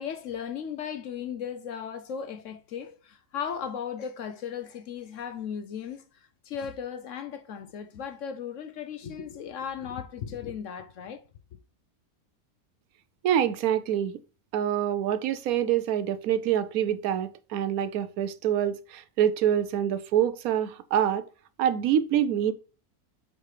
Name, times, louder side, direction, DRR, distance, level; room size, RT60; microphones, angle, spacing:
voice 1, 0.0-11.2, left 7 dB, 65° left, 0.9 m, -36 dB
voice 2, 13.2-14.2 14.5-21.2 21.6-22.5, right 10 dB, 75° right, 1.0 m, -26 dB
7.5 x 3.3 x 4.8 m
omnidirectional pair, 1.6 m